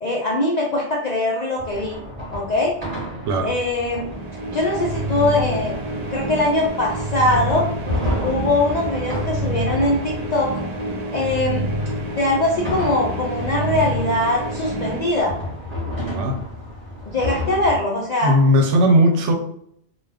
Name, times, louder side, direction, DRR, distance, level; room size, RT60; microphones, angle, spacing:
voice 1, 0.0-2.0 2.3-2.7 3.4-4.1 4.4-5.8 6.1-7.7 8.2-10.5 11.1-11.7 12.0-15.3 17.1-18.3, left 2 dB, 60° left, -3 dB, 0.4 m, -22 dB
sound 1, 1.6-17.8, left 1 dB, 30° right, 1.0 m, -32 dB
sound 2, 4.0-15.8, right 1 dB, 55° right, 0.4 m, -28 dB
voice 2, 18.2-19.3, equal, 80° right, 4 dB, 0.9 m, -17 dB
2.3 x 2.3 x 3.4 m, 0.71 s
omnidirectional pair, 1.2 m